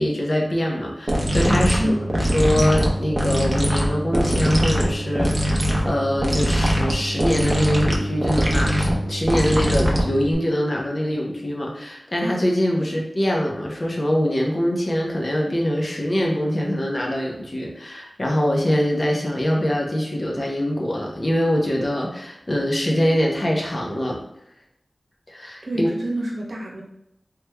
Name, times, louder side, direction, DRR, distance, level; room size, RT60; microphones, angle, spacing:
voice 1, 0.0-2.0 2.2-24.2 25.3-25.9, equal, 50° left, -1 dB, 0.7 m, -23 dB
sound 1, 1.1-10.3, equal, 30° right, 0.7 m, -22 dB
voice 2, 1.8-2.1 12.8-13.0 25.6-26.8, right 1 dB, 70° right, -3 dB, 0.9 m, -27 dB
3.2 x 3.1 x 2.2 m, 0.81 s
wide cardioid pair, 45°, 0 cm